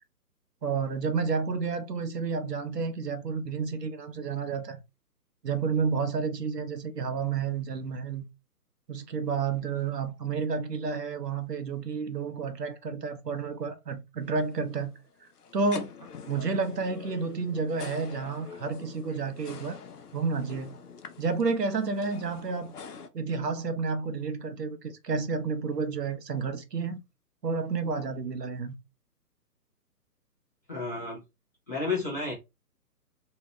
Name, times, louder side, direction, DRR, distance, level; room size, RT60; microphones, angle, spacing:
voice 1, 0.6-4.8 5.4-8.3 8.9-14.9 15.5-15.9 16.3-19.8 20.1-20.8 21.2-22.7 23.1-27.0 27.4-28.7, right 5 dB, 85° right, 0.7 m, -30 dB
sound 1, 14.2-23.1, left 6 dB, 70° left, 0.7 m, -45 dB
voice 2, 30.7-31.2 31.7-32.3, left 3 dB, 10° left, 0.6 m, -31 dB
2.7 x 2.2 x 3.0 m
figure-of-eight pair, 135°, 48 cm